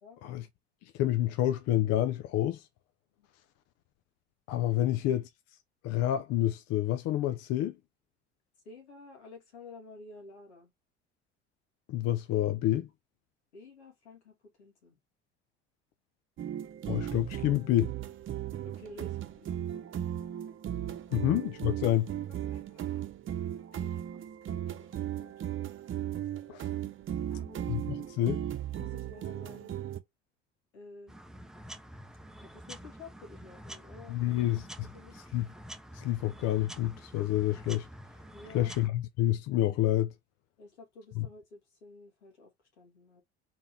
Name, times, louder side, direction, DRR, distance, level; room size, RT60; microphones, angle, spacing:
voice 1, 0.8-2.7 4.5-5.2 5.8-7.8 11.9-12.9 16.9-17.9 21.1-22.1 26.5-26.7 27.7-28.4 34.1-34.9 35.1-35.5 35.9-37.9 38.5-40.1 41.2-41.3, left 13 dB, 50° left, 0.6 m, -28 dB
voice 2, 8.6-10.7 13.5-15.0 18.6-20.0 21.1-21.3 21.7-21.9 22.5-23.1 23.7-25.3 26.2-26.5 27.1-27.7 28.8-29.8 30.7-31.2 32.4-34.5 34.7-35.2 38.3-38.8 40.6-43.2, left 3 dB, 80° left, 2.1 m, -52 dB
sound 1, 16.4-30.0, right 11 dB, 40° right, 0.9 m, -36 dB
sound 2, 31.1-38.9, equal, ahead, 0.7 m, -48 dB
4.0 x 3.9 x 2.6 m
hypercardioid pair, 60°, 33 cm